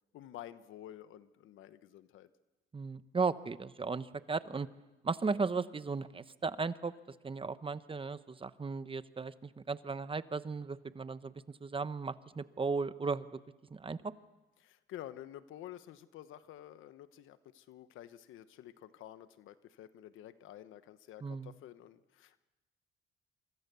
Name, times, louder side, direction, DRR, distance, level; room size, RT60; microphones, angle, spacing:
voice 1, 0.1-2.3 14.6-22.4, left 12 dB, 85° left, 13 dB, 1.1 m, -50 dB
voice 2, 2.7-4.7 5.0-6.9 7.2-11.3 11.6-13.4 13.7-14.1 21.2-21.5, right 4 dB, 25° right, 13 dB, 1.0 m, -36 dB
26.5 x 24.5 x 6.9 m, 1.1 s
cardioid pair, 90°, 20 cm